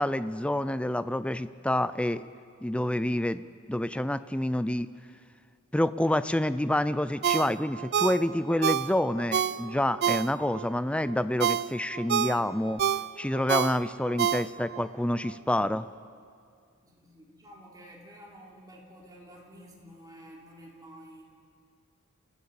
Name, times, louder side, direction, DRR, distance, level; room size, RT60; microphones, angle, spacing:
voice 1, 0.0-2.2 2.6-4.9 5.7-12.8 13.2-15.9, left 1 dB, 5° left, 14 dB, 0.4 m, -28 dB
Ringtone, 7.2-10.7 11.1-14.9 15.2-15.3, right 8 dB, 50° right, 0.4 m, -28 dB
voice 2, 16.8-21.2, equal, 20° right, -2 dB, 3.5 m, -51 dB
28.0 x 15.0 x 7.1 m, 2.3 s
head